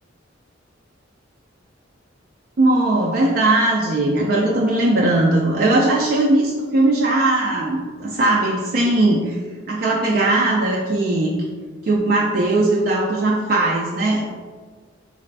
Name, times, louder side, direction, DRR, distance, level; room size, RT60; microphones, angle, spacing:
voice 1, 2.6-9.4 9.7-11.3 11.8-14.2, right 2 dB, 50° right, -2 dB, 0.4 m, -19 dB
4.0 x 2.5 x 3.3 m, 1.5 s
head